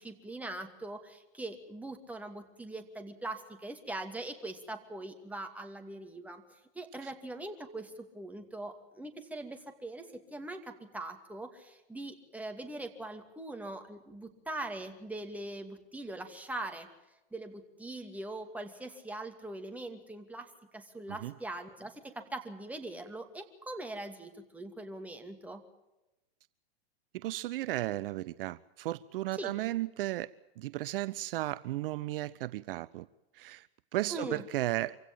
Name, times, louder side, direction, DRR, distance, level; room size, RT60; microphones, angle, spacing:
voice 1, 0.0-16.9 17.3-25.6 29.3-29.5 34.1-34.4, right 2 dB, 5° right, 2.5 m, -42 dB
voice 2, 27.1-30.3 30.6-33.1 33.4-33.7 33.9-35.0, right 16 dB, 60° right, 0.6 m, -34 dB
25.5 x 16.5 x 7.5 m
hypercardioid pair, 115°, 32 cm